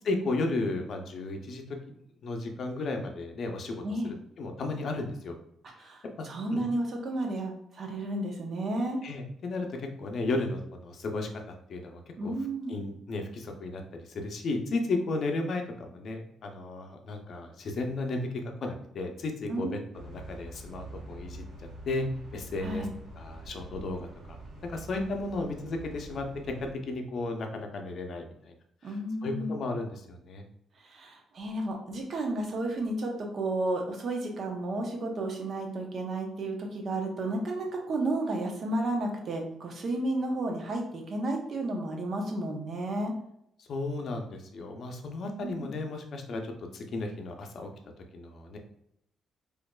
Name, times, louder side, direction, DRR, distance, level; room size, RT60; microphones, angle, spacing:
voice 1, 0.0-1.8 2.2-5.3 5.8-5.9 6.2-6.6 9.0-9.7 10.0-11.3 11.7-12.3 12.7-18.3 18.6-21.4 21.9-22.1 22.3-22.9 23.1-24.1 24.6-28.5 28.8-30.4 43.6-47.7 48.1-48.6, left 2 dB, 55° left, 3 dB, 0.6 m, -34 dB
voice 2, 5.8-9.0 12.2-12.7 19.5-19.7 22.6-23.0 28.8-29.5 30.8-43.1 45.4-45.7, right 1 dB, 50° right, 1 dB, 0.8 m, -32 dB
sound 1, 19.9-26.7, right 1 dB, 75° right, 1.1 m, -45 dB
4.3 x 2.6 x 2.3 m, 0.74 s
cardioid pair, 110°, 0 cm